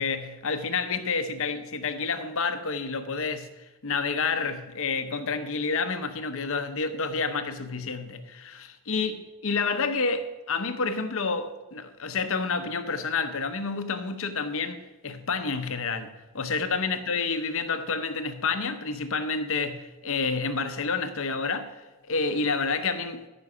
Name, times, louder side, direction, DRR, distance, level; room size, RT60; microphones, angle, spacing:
voice 1, 0.0-3.5 3.8-9.1 9.4-23.2, left 4 dB, 65° left, 0.9 m, -29 dB
14.0 x 6.2 x 5.0 m
head